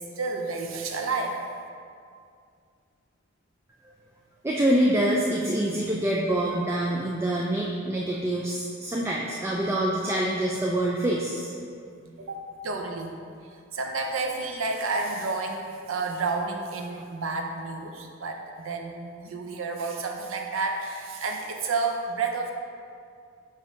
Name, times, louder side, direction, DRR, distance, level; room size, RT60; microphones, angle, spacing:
voice 1, 0.0-1.4 12.0-13.3 13.7-22.5, right 3 dB, 75° right, 2 dB, 0.6 m, -30 dB
voice 2, 4.4-11.5, right 1 dB, 15° right, -3 dB, 0.4 m, -26 dB
7.1 x 2.8 x 4.9 m, 2.3 s
head